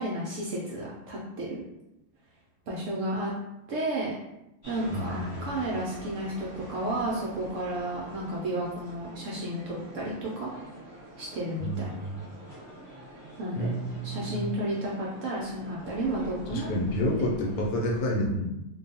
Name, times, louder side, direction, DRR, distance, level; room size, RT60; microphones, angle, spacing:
voice 1, 0.0-1.6 2.7-3.3 3.7-4.1 4.7-10.5 11.2-11.9 13.4-16.7 17.3-17.4, right 1 dB, 70° right, -5 dB, 0.8 m, -32 dB
sound 1, 4.6-18.0, right 1 dB, 20° right, 1.2 m, -46 dB
voice 2, 4.9-5.7 11.6-12.2 13.6-14.5 16.5-18.5, equal, 75° left, -2 dB, 1.1 m, -29 dB
2.5 x 2.2 x 2.7 m, 0.88 s
omnidirectional pair, 1.7 m